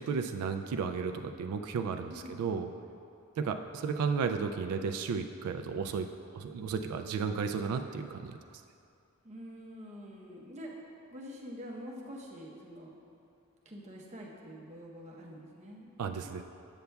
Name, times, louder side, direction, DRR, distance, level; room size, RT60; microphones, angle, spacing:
voice 1, 0.0-2.7 3.4-6.1 6.3-8.4 16.0-16.4, right 5 dB, 80° right, 11 dB, 0.3 m, -33 dB
voice 2, 2.0-2.4 9.2-10.7 11.1-12.9 13.7-15.9, equal, 30° right, -2 dB, 0.7 m, -46 dB
8.0 x 6.7 x 2.2 m, 2.6 s
head